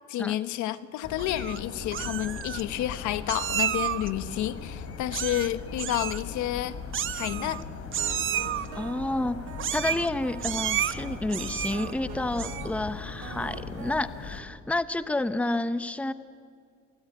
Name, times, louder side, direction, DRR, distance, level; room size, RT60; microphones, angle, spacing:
voice 1, 0.1-6.8 7.1-7.6, left 13 dB, 80° left, 13 dB, 1.3 m, -30 dB
sound 1, 1.0-14.4, left 5 dB, 55° left, 3.5 m, -39 dB
Meow, 1.2-1.6 1.9-2.6 3.3-4.1 5.1-5.5 5.8-6.2 6.9-7.6 7.9-8.7 9.6-10.1 10.4-10.9 11.3-11.9 12.3-12.7, right 10 dB, 45° right, 0.9 m, -31 dB
sound 2, 8.0-14.0, right 14 dB, 85° right, 0.9 m, -44 dB
voice 2, 8.7-9.5 9.7-16.1, left 2 dB, 5° left, 13 dB, 0.8 m, -30 dB
27.5 x 18.5 x 9.3 m, 2.1 s
cardioid pair, 115°, 29 cm